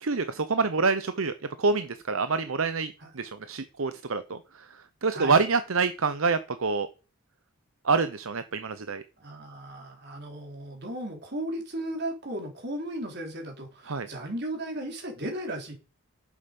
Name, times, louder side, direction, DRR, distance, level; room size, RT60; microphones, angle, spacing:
voice 1, 0.0-4.6 5.0-6.9 7.8-9.0 13.9-14.1, right 4 dB, 70° right, 12 dB, 0.8 m, -27 dB
voice 2, 9.2-15.7, right 1 dB, 50° right, 1 dB, 4.1 m, -35 dB
11.5 x 8.8 x 5.4 m, 0.33 s
head